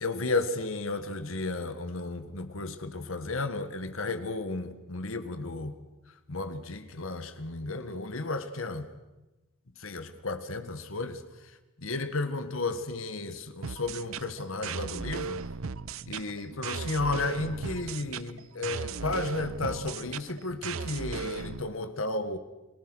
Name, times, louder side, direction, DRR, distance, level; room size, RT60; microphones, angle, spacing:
voice 1, 0.0-5.8 6.3-8.9 9.8-15.4 16.1-22.4, left 3 dB, 70° left, 1.7 m, -33 dB
sound 1, 13.6-21.6, right 5 dB, 75° right, 0.7 m, -36 dB
30.0 x 19.5 x 6.3 m
head